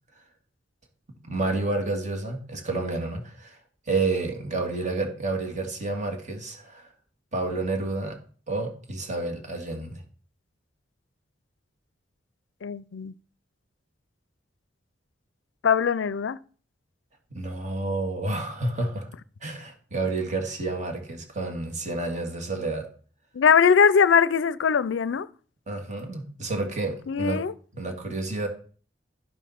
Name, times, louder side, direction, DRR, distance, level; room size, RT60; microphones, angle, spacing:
voice 1, 1.2-3.6 3.9-6.9 7.3-8.2 8.5-10.0 17.3-19.1 19.4-22.9 25.7-27.4 27.7-28.5, right 2 dB, 40° right, 2.4 m, -30 dB
voice 2, 12.6-13.1 15.6-16.4 23.3-25.3 27.1-27.5, left 6 dB, 85° left, 0.5 m, -21 dB
11.5 x 7.2 x 5.9 m
head